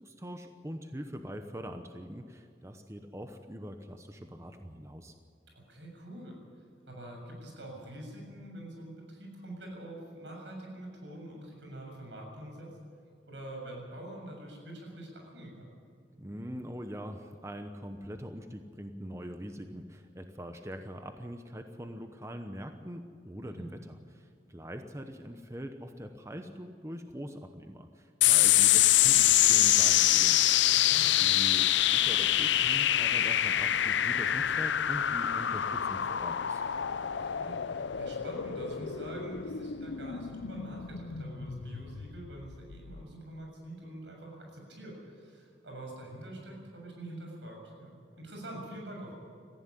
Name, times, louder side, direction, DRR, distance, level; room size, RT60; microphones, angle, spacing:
voice 1, 0.0-5.1 16.2-30.4 31.2-36.6, equal, 15° right, 6 dB, 0.9 m, -43 dB
voice 2, 5.5-6.4 6.9-12.7 13.3-15.7 23.5-23.7 30.7-31.2 37.2-49.1, right 1 dB, 85° right, 1 dB, 7.3 m, -45 dB
sound 1, 28.2-43.0, left 12 dB, 90° left, 0.6 m, -26 dB
19.0 x 15.0 x 9.9 m, 2.2 s
head